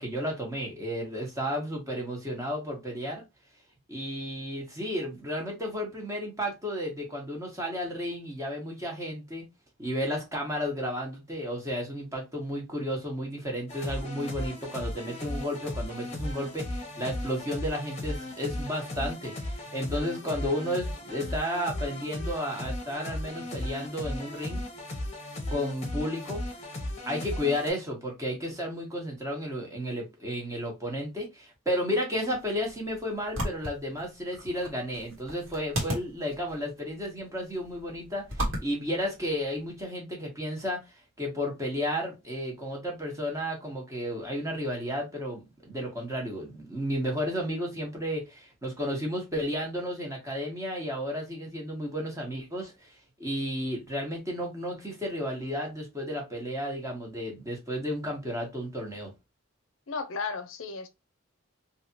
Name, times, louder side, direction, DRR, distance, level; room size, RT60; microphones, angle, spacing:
voice 1, 0.0-3.2 3.9-9.5 9.8-24.6 25.5-26.4 27.0-59.1, equal, 15° right, 1.2 m, -33 dB
sound 1, 13.7-27.7, left 1 dB, 30° left, 1.0 m, -36 dB
sound 2, 32.2-39.8, right 1 dB, 70° right, 1.5 m, -37 dB
voice 2, 59.9-60.9, left 4 dB, 65° left, 0.5 m, -34 dB
3.2 x 2.7 x 2.7 m
head